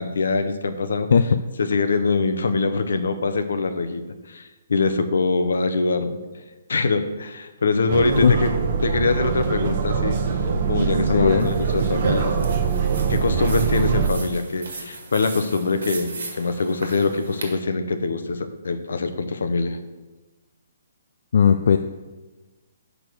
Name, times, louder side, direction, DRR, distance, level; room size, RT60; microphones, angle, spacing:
voice 1, 0.0-1.1 1.6-6.2 6.7-10.2 10.7-12.3 13.1-19.8, left 3 dB, 85° left, 9 dB, 0.8 m, -23 dB
sound 1, 7.9-14.1, right 6 dB, 40° right, 0.8 m, -23 dB
voice 2, 11.1-11.5 21.3-21.8, left 6 dB, 65° left, 8 dB, 0.3 m, -16 dB
sound 2, 11.4-17.5, right 3 dB, 80° right, 1.7 m, -38 dB
6.2 x 5.2 x 6.1 m, 1.2 s
hypercardioid pair, 170°, 0 cm